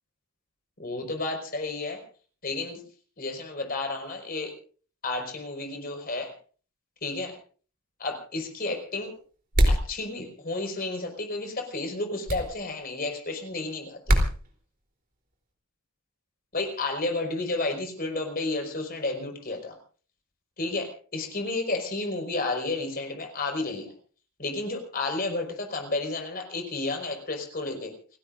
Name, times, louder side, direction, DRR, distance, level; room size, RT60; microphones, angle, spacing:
voice 1, 0.8-2.0 2.4-2.8 3.2-4.5 5.0-6.3 7.0-7.4 8.0-9.1 9.7-14.2 16.5-19.8 20.6-23.9 24.4-27.9, left 2 dB, 40° left, 4 dB, 5.1 m, -31 dB
sound 1, 9.5-9.9 12.3-12.5 14.1-14.3, equal, 40° right, 3.6 m, -20 dB
30.0 x 16.5 x 2.6 m, 0.41 s
head